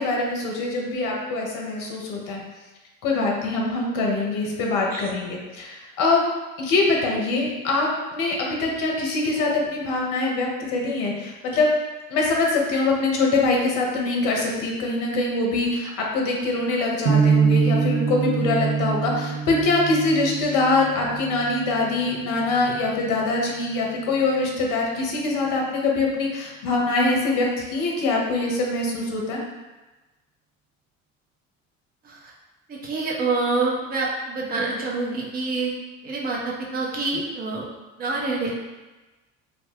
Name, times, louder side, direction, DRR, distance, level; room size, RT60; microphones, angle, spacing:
voice 1, 0.0-2.4 3.0-6.2 6.6-11.7 12.1-29.4, left 3 dB, 50° left, -1 dB, 0.7 m, -23 dB
sound 1, 17.1-23.1, right 6 dB, 80° right, 0.6 m, -25 dB
voice 2, 32.7-35.7 36.0-37.6 38.0-38.5, right 3 dB, 25° right, -3 dB, 0.6 m, -26 dB
2.4 x 2.1 x 3.3 m, 1.2 s
figure-of-eight pair, 60°, 40 cm